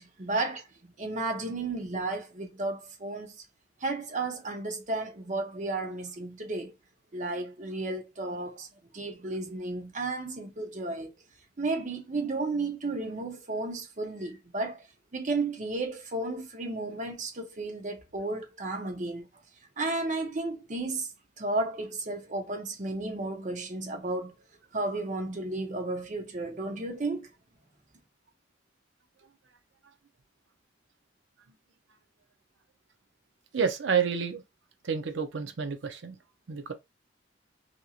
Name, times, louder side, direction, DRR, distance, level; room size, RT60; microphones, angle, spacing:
voice 1, 0.0-3.4 3.8-6.7 7.1-8.7 8.9-11.2 11.6-14.9 15.1-19.3 19.8-21.1 21.4-24.3 24.7-27.3, right 2 dB, 40° right, 0.7 m, -33 dB
voice 2, 33.5-34.4 34.8-36.2 36.5-36.7, right 6 dB, 85° right, 0.6 m, -29 dB
2.9 x 2.6 x 2.4 m
head